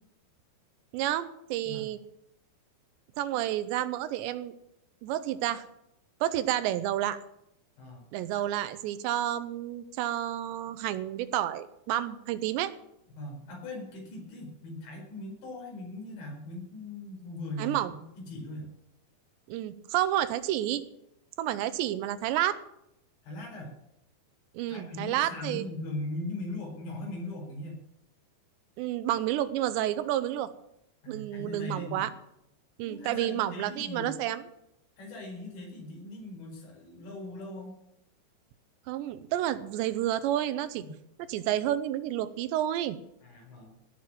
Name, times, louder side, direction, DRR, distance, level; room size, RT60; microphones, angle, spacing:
voice 1, 0.9-2.0 3.2-4.5 5.0-5.7 6.2-7.2 8.1-12.7 17.6-17.9 19.5-20.8 21.4-22.6 24.5-25.7 28.8-30.5 31.1-32.1 32.8-34.4 38.9-40.8 41.3-43.0, right 12 dB, 80° right, 13 dB, 3.0 m, -30 dB
voice 2, 13.2-18.7 23.2-23.7 24.7-27.8 31.0-32.1 32.8-34.1 35.0-37.8 40.8-40.9 43.2-43.8, left 1 dB, 75° left, 0 dB, 7.0 m, -40 dB
18.0 x 6.0 x 8.9 m, 0.80 s
omnidirectional pair, 5.1 m